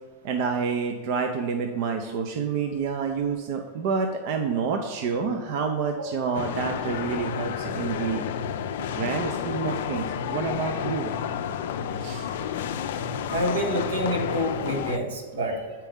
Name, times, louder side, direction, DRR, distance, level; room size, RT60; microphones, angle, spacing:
voice 1, 0.2-8.3 8.9-11.1 12.0-12.3, right 5 dB, 55° right, 4 dB, 0.5 m, -28 dB
sound 1, 6.3-15.0, left 8 dB, 70° left, 0.4 m, -30 dB
voice 2, 13.3-15.6, right 1 dB, 90° right, 0 dB, 1.3 m, -27 dB
7.1 x 4.4 x 3.6 m, 1.4 s
hypercardioid pair, 125°, 0 cm